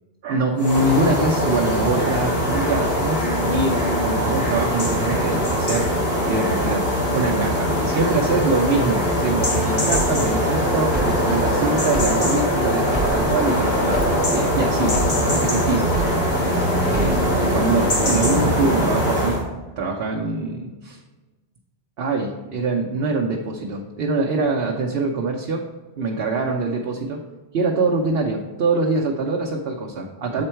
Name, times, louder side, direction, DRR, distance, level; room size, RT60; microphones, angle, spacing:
voice 1, 0.2-15.9 16.8-19.4 19.8-21.0 22.0-25.6 26.0-27.2 27.5-30.4, right 3 dB, 70° right, 0 dB, 0.9 m, -24 dB
sound 1, 0.6-19.4, equal, 70° left, 2.1 m, -21 dB
sound 2, 9.4-12.5 12.8-16.5 16.8-17.4, right 3 dB, 10° right, 0.6 m, -31 dB
7.7 x 4.5 x 4.4 m, 1.2 s
omnidirectional pair, 1.0 m